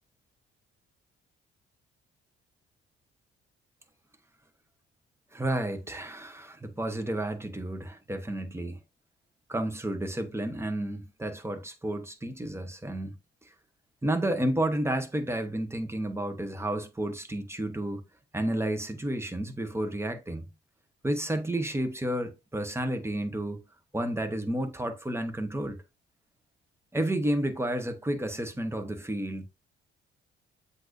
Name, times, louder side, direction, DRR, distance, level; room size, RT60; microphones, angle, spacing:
voice 1, 5.3-8.8 9.5-13.1 14.0-18.0 18.3-20.5 21.0-23.6 23.9-25.8 26.9-29.5, right 1 dB, 10° right, 0.8 m, -31 dB
7.6 x 2.6 x 2.5 m
hypercardioid pair, 45°, 31 cm